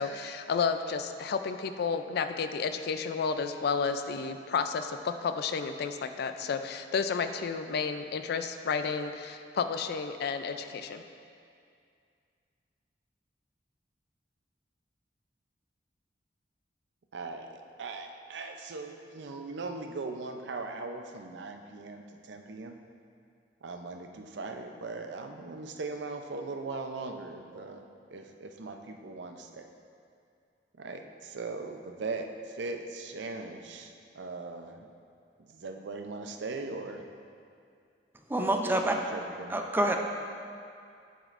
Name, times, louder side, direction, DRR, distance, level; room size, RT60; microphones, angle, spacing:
voice 1, 0.0-11.0, left 5 dB, 60° left, 9 dB, 0.4 m, -31 dB
voice 2, 17.1-17.5 17.8-22.8 23.6-27.8 28.1-29.7 30.8-34.9 35.4-37.0 38.6-39.6, right 3 dB, 70° right, 5 dB, 0.5 m, -39 dB
voice 3, 38.3-39.0 39.5-40.0, right 1 dB, 10° right, 3 dB, 0.4 m, -27 dB
8.2 x 7.4 x 2.5 m, 2.4 s
head